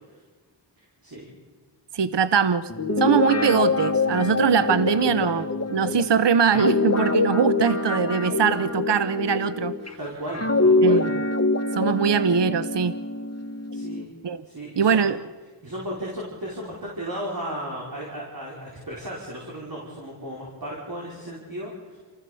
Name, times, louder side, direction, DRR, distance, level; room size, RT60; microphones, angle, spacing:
voice 1, 0.8-1.2 10.0-11.1 13.7-14.0 14.5-15.1 15.6-22.0, equal, 50° right, -5 dB, 5.1 m, -35 dB
voice 2, 1.9-2.7 3.0-5.4 5.7-9.7 10.8-11.2 11.7-13.0 14.2-14.4 14.8-15.2, right 7 dB, 65° right, 13 dB, 0.8 m, -22 dB
Guitar, 2.7-9.9 10.3-14.1, left 3 dB, 35° left, 1.7 m, -24 dB
27.5 x 15.0 x 6.9 m, 1.4 s
wide cardioid pair, 45°, 44 cm